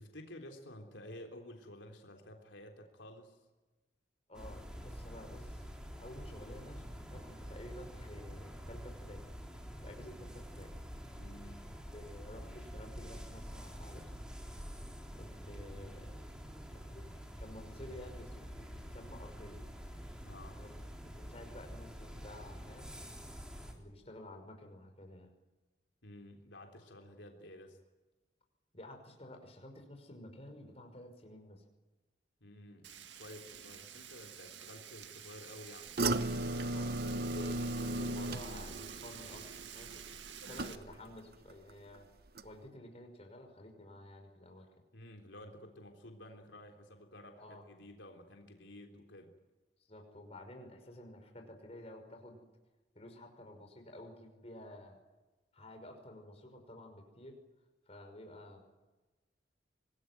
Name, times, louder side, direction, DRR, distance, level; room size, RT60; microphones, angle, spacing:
voice 1, 0.0-3.4 11.1-11.8 20.2-20.6 26.0-27.8 32.4-36.0 44.9-49.3, left 1 dB, 85° left, 3 dB, 3.7 m, -52 dB
voice 2, 4.3-5.6 6.0-9.3 9.8-10.7 11.9-14.1 15.1-16.3 16.7-19.6 20.6-20.7 21.1-22.9 23.7-25.3 28.7-31.6 36.7-39.5 39.7-40.0 40.5-42.1 42.4-44.7 47.4-47.7 49.9-52.4 52.9-55.0 55.5-57.4 57.9-58.6, left 1 dB, 35° left, 4 dB, 5.5 m, -51 dB
sound 1, 4.3-23.7, equal, 5° right, 3.6 m, -47 dB
Frying (food), 32.8-40.8, right 9 dB, 80° right, 1.9 m, -50 dB
sound 2, 36.0-41.2 41.5-42.0 42.4-42.5, right 2 dB, 55° right, 1.0 m, -36 dB
25.5 x 19.5 x 9.4 m, 1.2 s
head